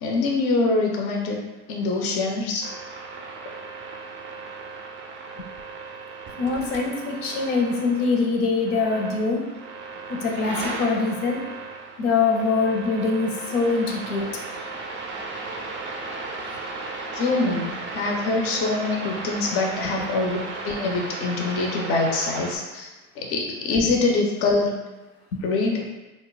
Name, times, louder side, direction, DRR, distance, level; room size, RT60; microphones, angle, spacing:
voice 1, 0.0-1.4 1.7-2.6 17.1-20.4 20.6-22.9 23.2-24.7 25.4-25.8, left 3 dB, 30° left, 1 dB, 0.5 m, -24 dB
sound 1, 2.6-22.6, right 3 dB, 25° right, 0.4 m, -35 dB
voice 2, 6.4-9.4 10.1-11.4 12.0-14.3 25.3-25.4, left 4 dB, 70° left, 1 dB, 0.8 m, -23 dB
2.4 x 2.1 x 3.8 m, 1.1 s
hypercardioid pair, 90°, 46 cm